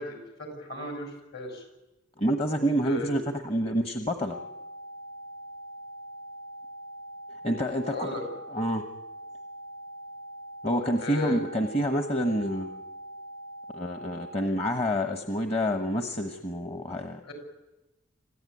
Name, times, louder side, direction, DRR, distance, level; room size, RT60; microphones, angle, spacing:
voice 1, 0.0-1.6 2.8-3.2 7.9-8.2 11.0-11.4 17.2-17.3, left 2 dB, 55° left, 4 dB, 7.1 m, -36 dB
voice 2, 2.2-4.4 7.4-8.2 8.5-8.8 10.6-12.8 13.7-17.2, equal, 30° left, 6 dB, 1.2 m, -28 dB
sound 1, 4.3-14.3, right 1 dB, 80° left, 4.4 m, -43 dB
27.0 x 15.0 x 9.9 m, 0.97 s
head